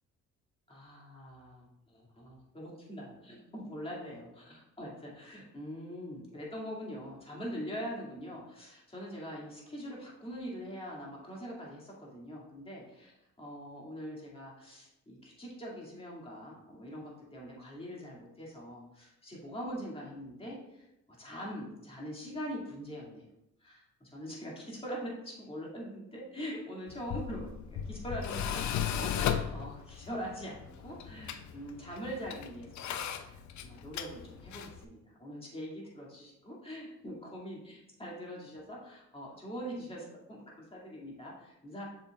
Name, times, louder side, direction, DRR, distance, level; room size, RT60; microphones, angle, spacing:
voice 1, 0.7-23.2 23.6-41.8, equal, 20° left, -4 dB, 2.3 m, -43 dB
Tools, 26.9-34.8, left 9 dB, 70° left, 0.6 m, -37 dB
7.1 x 6.0 x 2.4 m, 0.85 s
cardioid pair, 90°, 30 cm